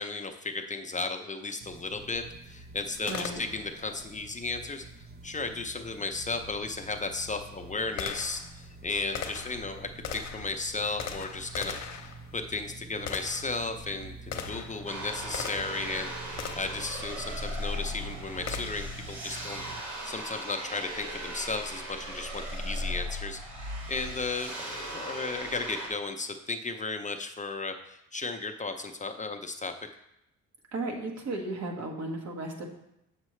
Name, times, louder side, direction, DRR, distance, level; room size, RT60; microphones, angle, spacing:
voice 1, 0.0-4.8 5.2-29.7, left 3 dB, 25° left, 6 dB, 0.5 m, -35 dB
sound 1, 1.6-19.8, right 3 dB, 35° right, 0.6 m, -47 dB
Gunshot gunfire, 3.1-3.9 6.2-6.3 7.0-15.9 16.4-16.9 18.5-19.0, left 7 dB, 60° left, 0.8 m, -40 dB
voice 2, 3.1-3.4 30.7-32.7, right 2 dB, 60° right, 1 dB, 1.4 m, -35 dB
sound 2, 14.9-25.9, equal, 85° right, 1.7 m, -37 dB
7.3 x 6.4 x 3.1 m, 0.81 s
cardioid pair, 90°, 30 cm